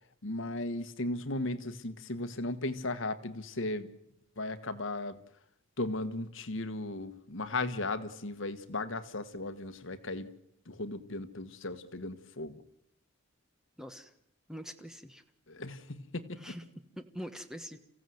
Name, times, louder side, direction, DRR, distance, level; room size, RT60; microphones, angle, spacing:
voice 1, 0.2-3.9 4.4-5.2 5.8-10.3 10.7-12.6 15.5-16.6, left 2 dB, 70° left, 11 dB, 1.3 m, -36 dB
voice 2, 13.8-14.1 14.5-15.2 16.4-16.6 17.0-17.8, equal, 5° right, 8 dB, 1.2 m, -43 dB
29.5 x 15.5 x 7.8 m, 0.77 s
head